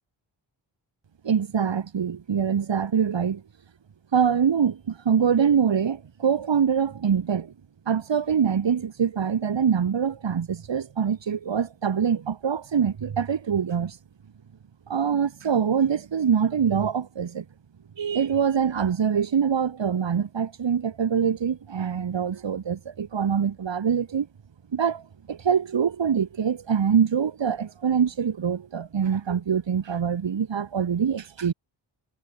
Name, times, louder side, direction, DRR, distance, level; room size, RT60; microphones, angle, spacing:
voice 1, 1.2-3.4 4.1-7.5 7.9-14.0 14.9-17.5 18.0-24.3 24.7-25.0 25.3-31.5, right 7 dB, 75° right, 3.6 m, -24 dB
wide cardioid pair, 90°, 45 cm